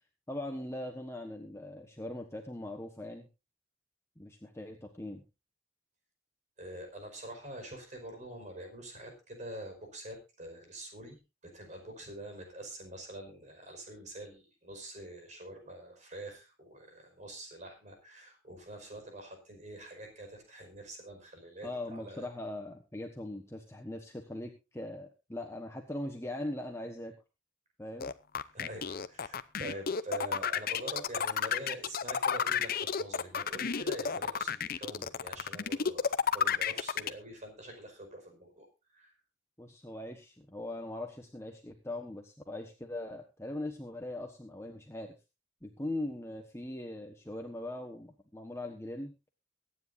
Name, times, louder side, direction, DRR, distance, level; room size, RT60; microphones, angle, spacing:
voice 1, 0.3-3.3 4.2-5.2 21.6-27.1 27.8-28.1 39.6-45.1 45.6-49.1, left 1 dB, 15° left, 3 dB, 1.3 m, -40 dB
voice 2, 6.6-22.3 28.5-38.7 38.9-39.1, right 1 dB, 40° right, 4 dB, 5.2 m, -45 dB
sound 1, 28.0-37.1, left 7 dB, 50° left, 0.7 m, -31 dB
23.0 x 9.8 x 2.7 m, 0.28 s
head